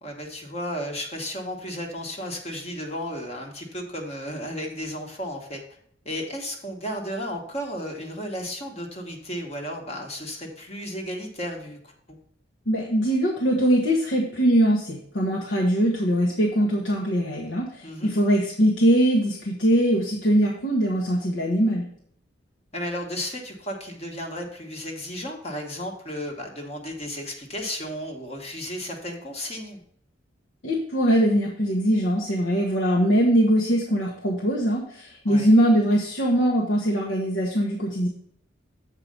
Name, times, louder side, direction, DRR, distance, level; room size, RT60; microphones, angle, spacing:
voice 1, 0.0-5.6 6.0-11.9 17.8-18.1 22.7-29.8 35.2-35.5, equal, 35° left, 2 dB, 1.3 m, -34 dB
voice 2, 12.7-21.9 30.6-38.1, equal, 70° left, -2 dB, 1.2 m, -22 dB
7.5 x 4.9 x 5.2 m, 0.65 s
head